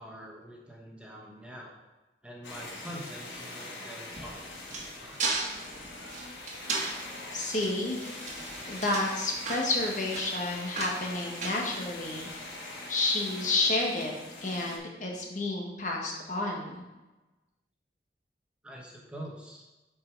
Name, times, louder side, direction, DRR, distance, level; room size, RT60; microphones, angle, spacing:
voice 1, 0.0-1.8 2.2-5.6 18.6-19.7, equal, 5° right, -2 dB, 1.1 m, -45 dB
sound 1, 2.4-14.8, left 2 dB, 85° left, 1.6 m, -43 dB
sound 2, 4.1-12.3, right 3 dB, 45° right, 1.5 m, -37 dB
voice 2, 7.3-8.0 8.7-12.3 12.9-14.1 14.4-16.8, left 2 dB, 45° left, -1 dB, 1.4 m, -30 dB
8.4 x 4.9 x 4.6 m, 1.1 s
head